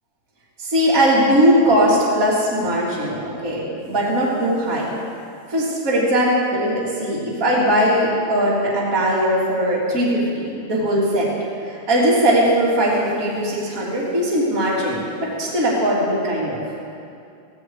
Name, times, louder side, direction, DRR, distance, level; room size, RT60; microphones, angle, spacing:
voice 1, 0.6-3.2 3.4-4.9 5.5-11.3 11.6-16.6, equal, 25° right, -8 dB, 3.5 m, -19 dB
17.5 x 16.5 x 4.8 m, 2.4 s
omnidirectional pair, 3.4 m